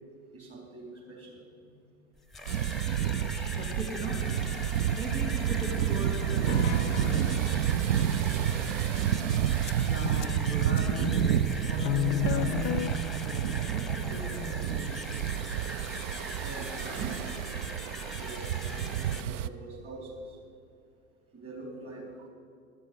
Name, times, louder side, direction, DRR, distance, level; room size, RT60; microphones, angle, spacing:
voice 1, 0.3-1.7 2.8-3.9 16.4-17.3 18.2-20.2 21.3-22.3, right 3 dB, 35° right, 0 dB, 4.2 m, -44 dB
sound 1, 2.2-19.2, left 1 dB, ahead, 0.9 m, -41 dB
sound 2, 2.5-19.5, right 10 dB, 60° right, 0.6 m, -29 dB
voice 2, 3.6-4.3 5.0-8.5 9.9-15.0, left 1 dB, 75° right, -1 dB, 2.5 m, -38 dB
sound 3, 6.5-7.4 9.7-9.8 10.2-10.3 10.8-10.9 11.8-12.9, left 14 dB, 50° left, 0.5 m, -31 dB
15.5 x 12.0 x 5.4 m, 2.5 s
figure-of-eight pair, 80°, 43 cm